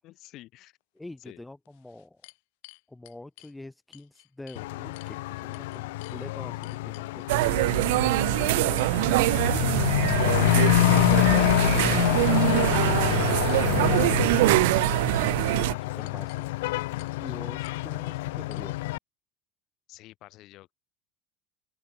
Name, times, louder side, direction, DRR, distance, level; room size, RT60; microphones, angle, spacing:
voice 1, 0.0-0.8 1.2-1.4 17.2-17.4 19.9-20.7, left 16 dB, 45° left, 3.9 m, -49 dB
sound 1, 1.0-1.1 1.7-3.5 3.9-4.6 5.0-5.2 5.5-6.2 6.6-7.5 7.9-8.1 8.8-9.2 9.5-9.9 10.3-10.7 11.1-11.5 11.9-12.0 12.5-13.0 13.5-13.6 14.0-14.2 14.5-15.4 16.0-16.5 17.0-17.2 17.6-17.8 18.5-18.6, left 31 dB, 65° left, 6.6 m, -53 dB
voice 2, 1.0-2.2 2.9-6.6 6.9-9.8 14.6-18.8, left 2 dB, 5° left, 0.9 m, -45 dB
Truck / Accelerating revving vroom, 4.6-19.0, left 20 dB, 85° left, 0.7 m, -27 dB
sound 2, 7.3-15.7, right 21 dB, 80° right, 0.5 m, -24 dB
open air
cardioid pair, 160°, 0 cm